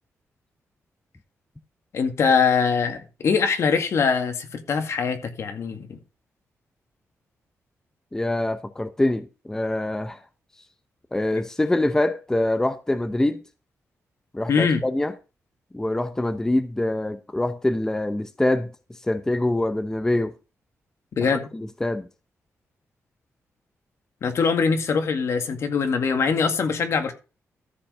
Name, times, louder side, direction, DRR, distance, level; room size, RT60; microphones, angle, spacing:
voice 1, 1.9-6.0 14.5-14.8 21.2-21.4 24.2-27.1, left 5 dB, 60° left, 2.0 m, -22 dB
voice 2, 8.1-10.2 11.1-13.4 14.3-15.1 15.7-20.4 21.3-22.1, left 1 dB, 10° left, 0.7 m, -25 dB
13.5 x 5.3 x 5.0 m
wide cardioid pair, 130°, 5 cm